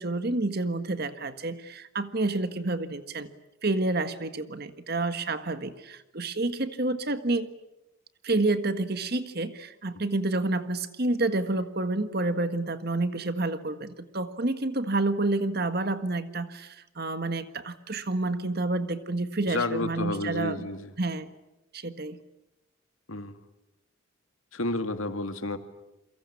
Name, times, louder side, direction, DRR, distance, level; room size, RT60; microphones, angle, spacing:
voice 1, 0.0-3.3 3.6-7.6 8.2-20.7 21.0-21.3 21.7-22.2, right 2 dB, 50° right, 11 dB, 1.6 m, -29 dB
voice 2, 19.4-20.9 23.1-23.4 24.5-25.6, left 2 dB, 85° left, 8 dB, 2.3 m, -31 dB
29.0 x 23.5 x 8.6 m, 0.93 s
head